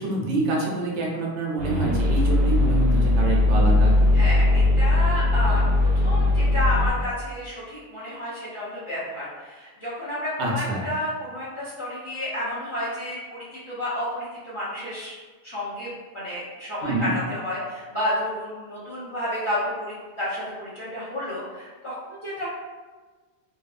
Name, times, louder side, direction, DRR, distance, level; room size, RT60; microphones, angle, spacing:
voice 1, 0.0-4.0 10.4-10.9 16.8-17.1, right 2 dB, 75° right, -2 dB, 0.8 m, -26 dB
sound 1, 1.6-6.9, left 2 dB, 40° right, 0.7 m, -19 dB
voice 2, 4.1-15.2 15.4-22.5, left 1 dB, 30° left, -10 dB, 0.6 m, -31 dB
2.7 x 2.2 x 2.4 m, 1.3 s
omnidirectional pair, 1.2 m